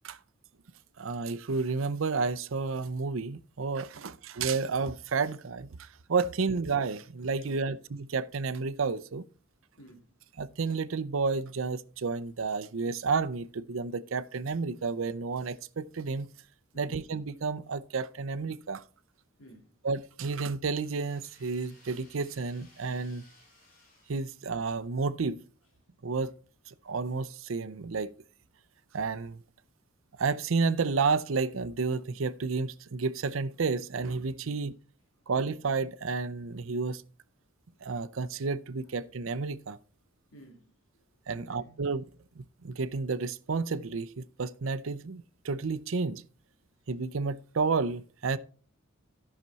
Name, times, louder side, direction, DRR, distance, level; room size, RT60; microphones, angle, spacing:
voice 1, 1.0-9.3 10.4-16.3 16.7-18.8 19.8-23.2 24.1-25.4 26.0-26.3 26.7-28.1 28.9-29.4 30.2-34.7 35.3-37.0 37.8-39.8 41.3-42.1 42.4-46.2 46.9-48.4, right 4 dB, 70° right, 0.6 m, -31 dB
voice 2, 7.4-7.8 9.8-10.1 16.7-17.0 19.4-19.7 34.4-34.5 40.3-40.7 41.3-41.8, right 1 dB, 75° left, 2.2 m, -54 dB
sound 1, 20.8-24.9, left 2 dB, 45° left, 4.0 m, -61 dB
13.5 x 5.9 x 4.1 m
head